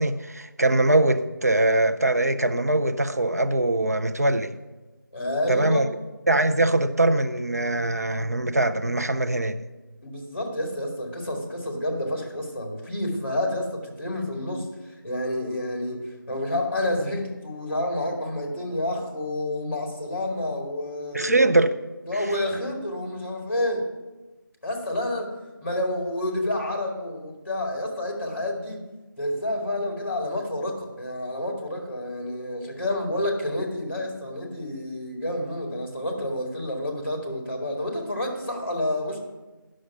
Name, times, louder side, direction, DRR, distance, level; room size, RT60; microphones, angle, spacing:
voice 1, 0.0-4.6 5.5-5.9 6.3-9.6 21.1-21.7 22.1-22.2, right 2 dB, 50° right, 0.5 m, -22 dB
voice 2, 5.1-5.8 10.0-14.7 15.0-21.5 22.1-23.9 24.6-25.3 25.6-28.8 29.2-39.2, left 1 dB, 35° left, 2.1 m, -29 dB
9.6 x 6.4 x 5.9 m
figure-of-eight pair, 180°, 11 cm